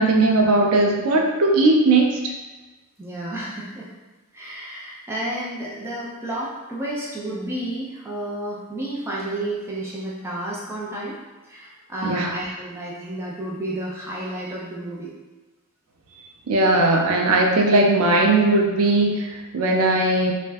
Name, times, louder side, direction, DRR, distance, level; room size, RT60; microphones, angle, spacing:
voice 1, 0.0-2.3 12.0-12.3 16.5-20.3, right 2 dB, 75° right, 0 dB, 0.4 m, -18 dB
voice 2, 3.0-3.9 4.3-11.1 11.5-15.1, right 1 dB, 10° right, -5 dB, 0.4 m, -31 dB
2.5 x 2.1 x 3.3 m, 1.2 s
head